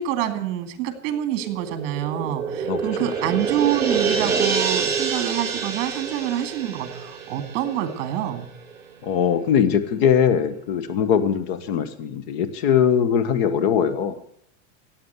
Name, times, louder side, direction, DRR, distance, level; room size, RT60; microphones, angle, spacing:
voice 1, 0.0-8.5, right 11 dB, 45° right, 9 dB, 2.2 m, -26 dB
sound 1, 1.4-8.4 8.8-8.9, right 5 dB, 5° right, 3.5 m, -27 dB
voice 2, 2.7-3.1 9.0-14.2, left 8 dB, 50° left, 12 dB, 1.2 m, -21 dB
15.0 x 8.8 x 8.0 m, 0.71 s
supercardioid pair, 170°, 40 cm